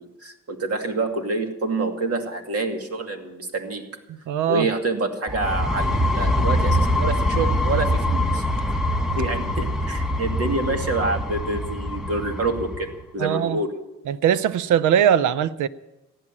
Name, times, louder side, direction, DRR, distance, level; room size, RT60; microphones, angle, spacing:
voice 1, 0.0-3.9 4.5-8.4 9.1-12.9 13.1-13.7, right 3 dB, 50° right, 2.4 m, -27 dB
voice 2, 4.1-4.7 13.2-13.6 14.1-15.7, right 9 dB, 80° right, 0.7 m, -21 dB
sound 1, 5.3-12.9, left 1 dB, ahead, 1.1 m, -24 dB
14.5 x 11.0 x 7.5 m
cardioid pair, 90°, 30 cm